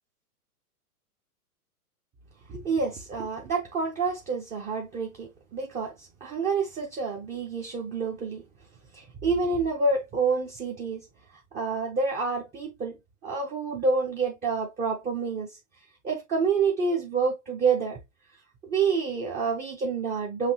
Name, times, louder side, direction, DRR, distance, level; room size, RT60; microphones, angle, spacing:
voice 1, 2.5-8.4 8.9-11.1 11.5-13.0 13.2-15.5 16.0-18.0 18.6-20.5, right 4 dB, 15° right, 0.6 m, -28 dB
5.8 x 2.7 x 2.7 m
hypercardioid pair, 125°, 46 cm